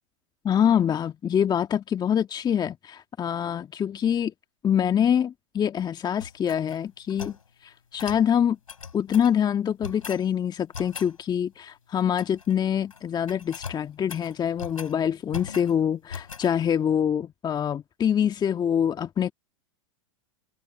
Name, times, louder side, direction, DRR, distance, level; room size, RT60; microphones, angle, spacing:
voice 1, 0.4-4.3 4.6-7.4 7.6-8.6 8.9-19.3, left 8 dB, 25° left, 1.6 m, -25 dB
sound 1, 6.2-7.4 8.0-8.3 8.7-9.3 9.8-10.3 10.7-11.1 11.9-12.5 12.8-13.0 13.3-15.0 15.3-15.8 16.1-16.5, left 6 dB, 90° left, 3.9 m, -40 dB
hypercardioid pair, 100°, 17 cm